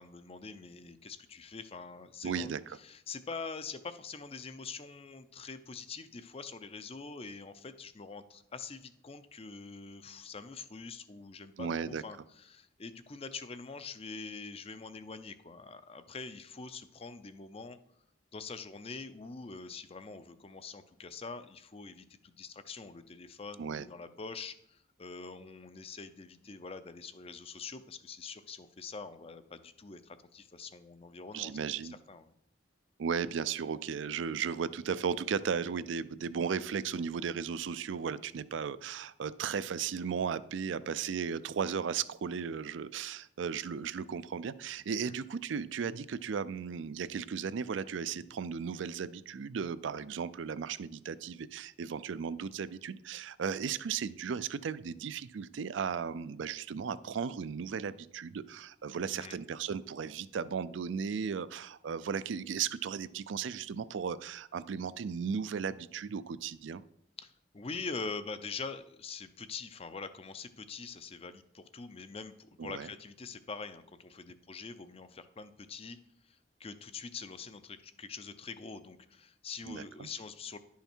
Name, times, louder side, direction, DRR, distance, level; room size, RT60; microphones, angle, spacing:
voice 1, 0.0-17.8 18.3-31.5 32.1-32.3 59.1-59.4 67.2-72.3 72.6-76.0 76.2-80.6, left 4 dB, 30° left, 12 dB, 0.5 m, -44 dB
voice 2, 2.2-2.8 11.6-12.0 23.6-23.9 31.3-32.0 33.0-66.8 72.6-72.9 79.7-80.1, right 6 dB, 75° right, 16 dB, 0.4 m, -36 dB
10.5 x 5.6 x 4.4 m, 0.73 s
head